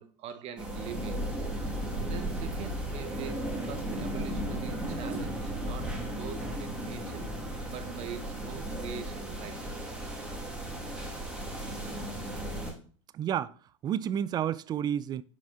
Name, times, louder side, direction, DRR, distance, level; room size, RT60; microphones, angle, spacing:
voice 1, 0.0-1.4 1.7-7.2 7.7-9.7, right 8 dB, 40° right, 1.0 m, -44 dB
sound 1, 0.6-12.7, right 1 dB, 5° right, 2.2 m, -35 dB
voice 2, 13.1-15.2, right 9 dB, 25° right, 0.3 m, -31 dB
6.0 x 4.9 x 3.5 m
hypercardioid pair, 90°, 15 cm